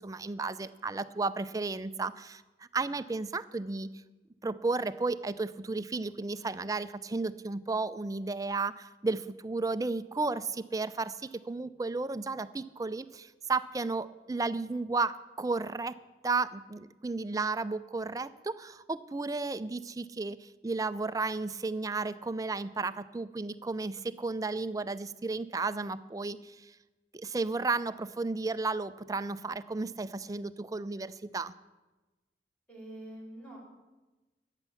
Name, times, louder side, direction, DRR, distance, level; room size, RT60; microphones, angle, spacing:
voice 1, 0.0-2.4 2.7-3.9 4.4-16.0 16.2-26.8 27.1-31.5, right 3 dB, 20° right, 14 dB, 0.4 m, -33 dB
voice 2, 32.7-33.6, right 1 dB, 5° left, -4 dB, 5.2 m, -45 dB
14.0 x 9.9 x 7.0 m, 1.2 s
head